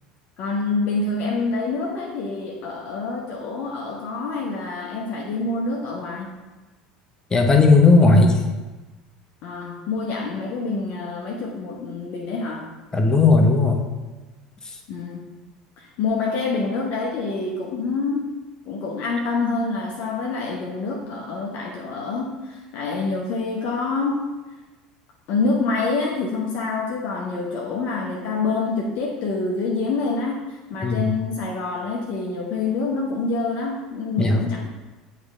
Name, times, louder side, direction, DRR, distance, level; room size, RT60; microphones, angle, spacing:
voice 1, 0.4-6.4 9.4-12.7 14.9-15.3 15.8-18.3 18.7-24.2 25.3-34.6, left 3 dB, 50° left, -2 dB, 0.8 m, -26 dB
voice 2, 7.3-8.4 12.9-13.9 30.8-31.1 34.2-34.4, left 3 dB, 20° left, 3 dB, 0.9 m, -15 dB
8.1 x 3.3 x 3.6 m, 1.2 s
figure-of-eight pair, 70°, 3 cm